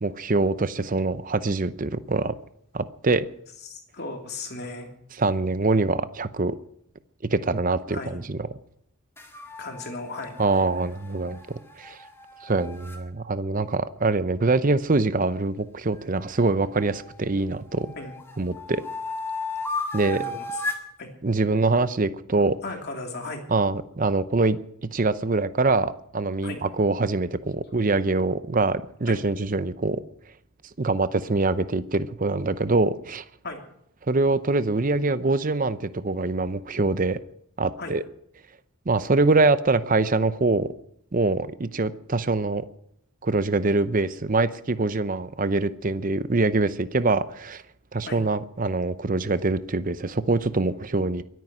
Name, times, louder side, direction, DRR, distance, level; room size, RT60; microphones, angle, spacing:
voice 1, 0.0-2.3 2.7-3.3 5.2-6.6 7.3-8.4 10.4-12.0 12.4-17.9 18.4-18.8 19.9-20.2 21.2-22.6 23.5-24.6 24.9-30.0 30.8-33.2 34.1-37.2 37.6-38.0 38.9-40.7 41.1-42.6 43.2-47.6 47.9-51.2, right 3 dB, 40° right, 14 dB, 0.7 m, -24 dB
voice 2, 3.6-4.9 7.9-8.2 9.6-10.4 18.0-18.1 20.1-20.6 21.0-21.1 22.6-23.4 26.4-26.6 29.1-29.2 33.4-33.6 37.8-37.9 48.0-48.2, left 3 dB, 50° left, 2 dB, 3.1 m, -36 dB
sound 1, 9.2-13.0 15.9-17.2 17.7-20.9, left 2 dB, 10° left, 1.8 m, -35 dB
23.0 x 9.4 x 6.1 m, 0.72 s
head